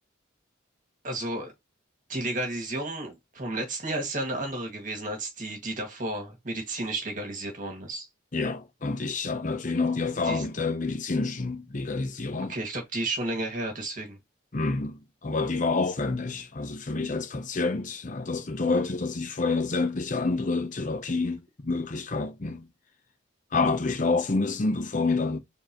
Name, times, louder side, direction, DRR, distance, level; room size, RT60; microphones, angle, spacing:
voice 1, 1.0-1.5 2.1-8.1 10.2-10.4 12.5-14.2, right 2 dB, 40° right, 1.9 m, -32 dB
voice 2, 8.3-12.6 14.5-22.7 23.5-25.4, left 3 dB, 40° left, 0.6 m, -28 dB
4.5 x 3.7 x 2.9 m
head